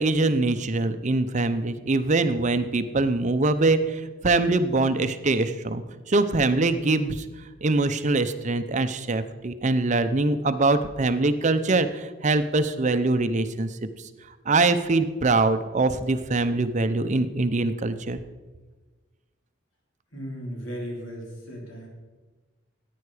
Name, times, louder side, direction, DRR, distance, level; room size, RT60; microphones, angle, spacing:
voice 1, 0.0-7.2 7.6-13.7 14.5-18.2, right 3 dB, 35° right, 10 dB, 0.6 m, -23 dB
voice 2, 20.1-21.9, equal, 75° left, -1 dB, 3.8 m, -36 dB
14.5 x 9.4 x 4.9 m, 1.3 s
head